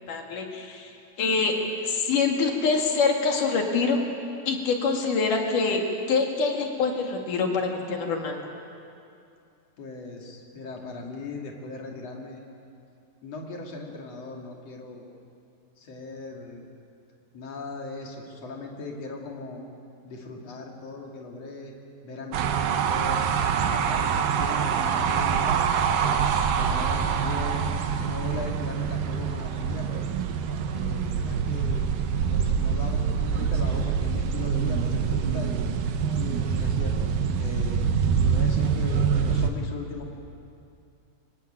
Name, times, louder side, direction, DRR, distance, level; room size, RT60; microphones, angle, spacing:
voice 1, 0.0-4.0 4.5-5.8 6.1-8.4, left 4 dB, 65° left, 2 dB, 3.6 m, -25 dB
voice 2, 9.8-12.4 13.2-15.1 15.9-16.6 17.3-19.6 20.0-21.7 22.0-23.2 23.7-24.1 24.4-25.6 26.0-27.7 28.0-30.0 30.7-31.9 32.3-35.7 36.2-37.8 38.3-40.1, left 3 dB, 50° left, 0 dB, 3.5 m, -38 dB
sound 1, 22.3-39.5, right 7 dB, 85° right, 2.9 m, -25 dB
24.5 x 18.5 x 8.9 m, 2.5 s
omnidirectional pair, 4.0 m